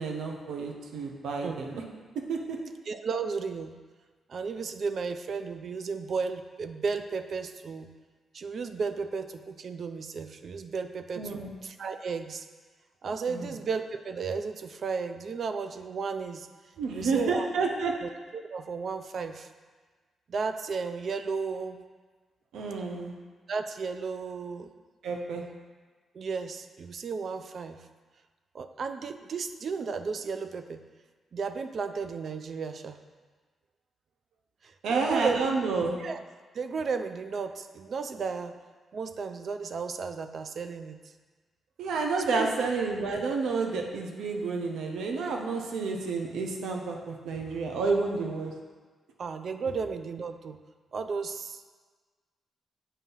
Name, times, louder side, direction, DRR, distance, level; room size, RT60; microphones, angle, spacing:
voice 1, 0.0-1.8 2.3-2.6 11.2-11.5 13.3-13.5 16.8-17.9 22.5-23.2 25.0-25.4 34.8-36.0 41.8-48.5, right 4 dB, 85° right, 2 dB, 0.7 m, -30 dB
voice 2, 2.9-3.8 4.3-7.9 8.3-12.5 13.0-16.5 16.9-17.5 18.0-19.5 20.3-21.8 23.5-24.7 26.1-27.8 28.5-30.8 31.3-33.0 34.6-35.4 36.0-36.2 36.5-38.6 38.9-41.0 42.3-42.5 49.2-50.6 50.9-51.8, right 5 dB, 60° right, 8 dB, 0.4 m, -34 dB
7.3 x 2.8 x 5.4 m, 1.4 s
cardioid pair, 85°, 0 cm